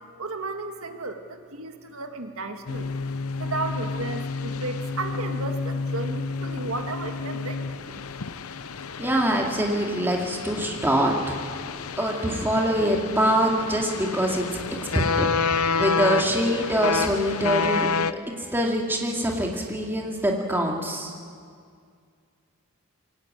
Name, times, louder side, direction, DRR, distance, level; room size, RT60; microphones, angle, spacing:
voice 1, 0.2-2.9 3.4-7.7, right 3 dB, 75° right, 5 dB, 1.9 m, -33 dB
sound 1, 2.7-18.1, left 4 dB, 80° left, 0.7 m, -29 dB
voice 2, 9.0-11.4 12.0-14.6 15.2-17.9 18.3-21.1, equal, 10° right, -1 dB, 2.4 m, -24 dB
23.5 x 17.5 x 9.0 m, 2.2 s
head